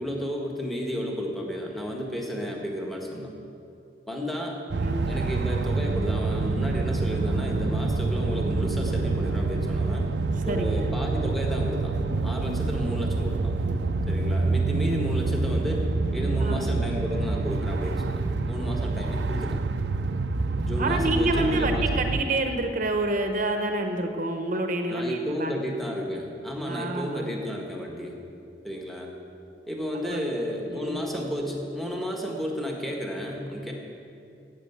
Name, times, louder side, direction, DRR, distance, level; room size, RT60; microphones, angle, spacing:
voice 1, 0.0-3.3 4.1-4.6 5.1-10.1 10.4-11.9 12.2-13.5 14.1-15.9 16.1-19.6 20.4-21.9 24.9-28.1 28.6-29.1 29.7-33.7, equal, ahead, 0 dB, 1.5 m, -32 dB
voice 2, 4.7-5.2 10.3-10.9 16.4-16.7 20.8-25.5 26.7-27.3 30.1-30.3 30.7-31.0, right 2 dB, 50° right, 5 dB, 0.9 m, -28 dB
sound 1, 4.7-22.2, right 3 dB, 80° right, 0.5 m, -27 dB
11.5 x 8.5 x 8.1 m, 2.6 s
head